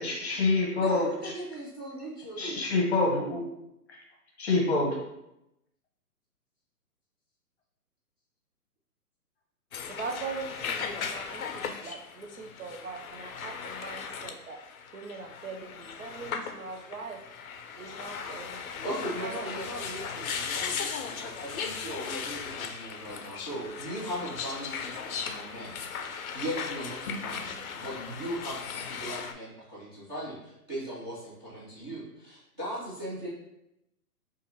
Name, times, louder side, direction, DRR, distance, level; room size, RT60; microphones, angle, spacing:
voice 1, 0.0-1.3 2.4-3.4 3.9-4.0 4.4-5.0, left 3 dB, 45° left, -1 dB, 0.8 m, -26 dB
voice 2, 0.7-2.7 18.8-33.3, right 1 dB, 15° right, -11 dB, 0.7 m, -38 dB
sound 1, 9.7-29.3, left 6 dB, 65° left, 0.5 m, -37 dB
voice 3, 9.9-14.6 14.9-17.2 17.8-18.8 19.2-19.4, right 4 dB, 60° right, 3 dB, 0.5 m, -41 dB
4.2 x 2.5 x 2.7 m, 0.86 s
hypercardioid pair, 165°, 47 cm